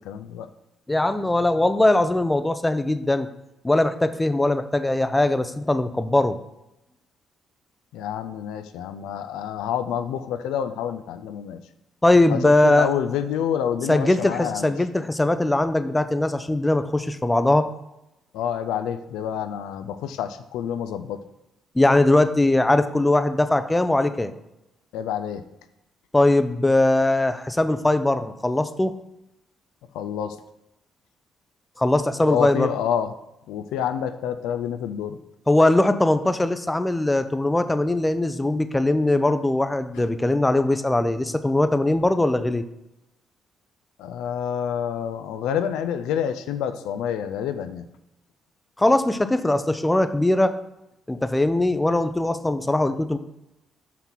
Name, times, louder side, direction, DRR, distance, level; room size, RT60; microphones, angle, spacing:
voice 1, 0.0-0.5 7.9-11.6 12.3-14.7 18.3-21.2 24.9-25.4 29.9-30.4 32.3-33.1 33.5-35.2 40.0-40.1 44.0-47.8, left 9 dB, 80° left, 10 dB, 0.4 m, -28 dB
voice 2, 0.9-3.3 3.6-6.4 12.0-12.9 13.9-17.7 21.7-24.3 26.1-28.9 31.8-32.7 35.5-42.6 48.8-50.5 51.1-53.2, left 2 dB, 15° left, 10 dB, 0.6 m, -20 dB
5.9 x 5.5 x 4.4 m, 0.91 s
hypercardioid pair, 55°, 0 cm